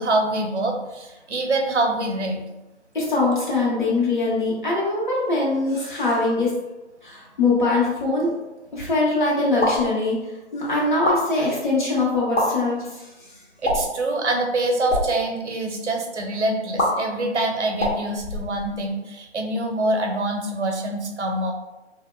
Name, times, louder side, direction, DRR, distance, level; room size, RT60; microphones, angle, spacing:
voice 1, 0.0-2.5 13.6-21.5, right 2 dB, 70° right, 3 dB, 0.6 m, -25 dB
voice 2, 2.9-6.5 7.0-8.3 8.7-10.2 10.5-13.1, left 3 dB, 45° left, -5 dB, 0.8 m, -22 dB
sound 1, 9.6-9.9 10.9-11.2 12.2-12.5 13.6-14.0 14.8-15.1 16.8-16.9 17.7-18.9, left 1 dB, 90° left, 1.0 m, -24 dB
2.8 x 2.1 x 2.2 m, 1.0 s
figure-of-eight pair, 165°, 35 cm